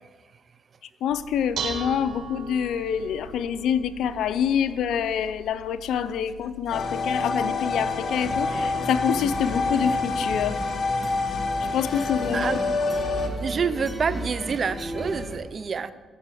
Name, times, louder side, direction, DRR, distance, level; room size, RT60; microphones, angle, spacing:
voice 1, 1.0-10.6 11.7-12.5, left 8 dB, 80° left, 14 dB, 0.5 m, -26 dB
Dishes pots and pans, 1.1-8.5, right 4 dB, 75° right, 1.1 m, -40 dB
sound 1, 6.7-13.3, left 3 dB, 50° left, 1.0 m, -27 dB
sound 2, 8.1-15.4, right 1 dB, 10° right, 1.8 m, -35 dB
voice 2, 13.4-15.9, right 6 dB, 45° right, 14 dB, 0.5 m, -27 dB
12.5 x 6.9 x 4.9 m, 1.4 s
cardioid pair, 90°, 0 cm